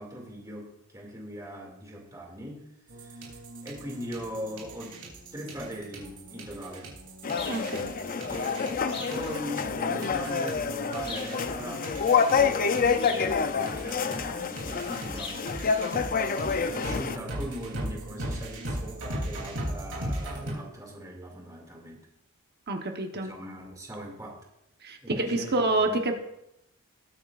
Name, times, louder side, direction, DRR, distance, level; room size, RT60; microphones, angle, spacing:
voice 1, 0.0-2.7 3.0-5.0 5.3-7.0 7.5-8.6 9.1-11.8 12.1-15.8 16.5-22.1 23.1-24.4 25.0-26.0, equal, 15° right, -1 dB, 2.4 m, -40 dB
sound 1, 2.9-20.5, right 1 dB, 75° right, 3.2 m, -39 dB
sound 2, 7.2-17.2, left 5 dB, 40° left, 0.5 m, -28 dB
sound 3, 7.3-7.7 8.9-9.2 11.0-11.4 13.0-13.3 15.1-15.5, left 3 dB, 25° left, 1.4 m, -39 dB
voice 2, 7.5-7.9 22.7-23.3 24.8-26.1, right 2 dB, 50° right, 4 dB, 1.1 m, -28 dB
19.5 x 8.9 x 2.5 m, 0.84 s
head